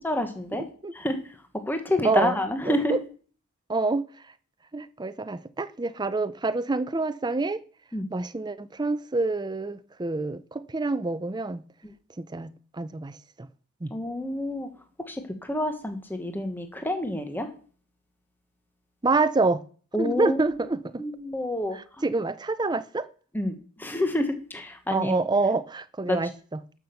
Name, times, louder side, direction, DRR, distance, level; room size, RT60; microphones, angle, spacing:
voice 1, 0.0-0.6 0.9-1.2 1.7-2.9 7.9-8.1 13.9-14.7 15.1-17.5 19.9-20.4 21.0-21.8 23.3-25.1 26.1-26.2, left 1 dB, 10° left, 1.1 m, -28 dB
voice 2, 2.0-2.4 2.7-3.0 3.7-4.1 4.7-7.6 8.1-11.6 12.2-12.5 12.8-13.1 13.4-13.5 13.8-13.9 19.0-19.6 19.9-21.0 21.7-23.1 24.9-26.6, right 3 dB, 20° right, 0.5 m, -27 dB
12.0 x 6.0 x 6.9 m
head